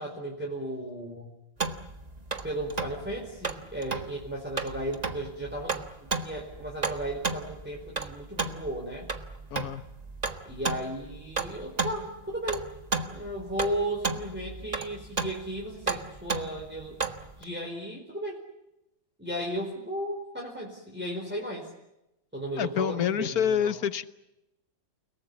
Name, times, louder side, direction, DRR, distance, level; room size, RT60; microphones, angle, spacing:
voice 1, 0.0-1.3 2.4-9.1 10.4-12.7 13.1-17.0 17.4-18.4 19.2-21.7 22.3-23.7, right 1 dB, 5° right, -2 dB, 4.6 m, -35 dB
sound 1, 1.6-17.4, right 4 dB, 25° right, 1.3 m, -34 dB
voice 2, 9.5-9.8 22.6-24.1, left 8 dB, 55° left, 13 dB, 1.4 m, -27 dB
30.0 x 19.0 x 8.6 m, 0.90 s
omnidirectional pair, 2.1 m